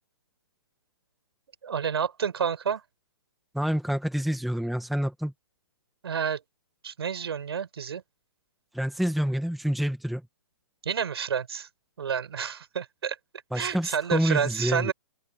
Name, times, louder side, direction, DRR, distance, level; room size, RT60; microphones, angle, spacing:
voice 1, 1.6-2.8 6.0-6.4 6.8-8.0 10.8-11.7 12.0-13.2 13.5-14.9, right 7 dB, 70° right, 6.2 m, -29 dB
voice 2, 3.5-5.3 8.7-10.2 13.5-14.9, equal, ahead, 1.4 m, -27 dB
open air
hypercardioid pair, 140°, 13 cm